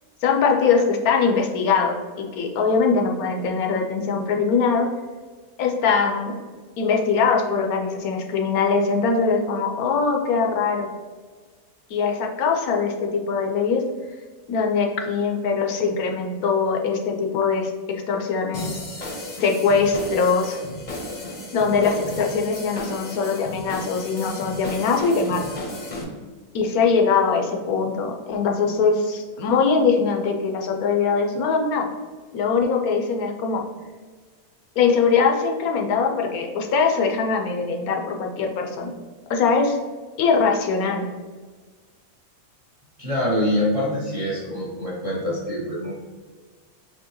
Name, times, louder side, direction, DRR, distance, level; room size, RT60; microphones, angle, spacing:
voice 1, 0.2-4.9 5.6-6.4 6.8-10.9 11.9-13.8 14.5-18.8 19.4-20.6 21.5-25.4 26.5-31.9 32.3-33.6 34.8-38.9 39.3-39.8 40.2-41.0, left 5 dB, 85° left, 2 dB, 1.1 m, -22 dB
sound 1, 18.5-26.0, left 2 dB, 40° left, 0.7 m, -34 dB
voice 2, 43.0-45.9, left 1 dB, 35° right, -5 dB, 0.6 m, -25 dB
4.5 x 2.8 x 3.0 m, 1.4 s
omnidirectional pair, 1.5 m